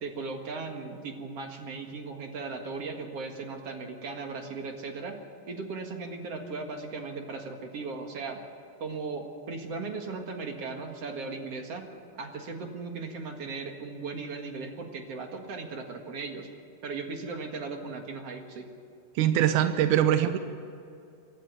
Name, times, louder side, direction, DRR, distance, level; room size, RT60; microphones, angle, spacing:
voice 1, 0.0-5.2 5.5-8.4 8.8-11.8 12.2-16.5 16.8-18.7, right 4 dB, 55° right, 4 dB, 2.6 m, -37 dB
voice 2, 19.2-20.4, right 11 dB, 80° right, 9 dB, 2.3 m, -23 dB
23.5 x 13.5 x 9.3 m, 2.6 s
omnidirectional pair, 3.5 m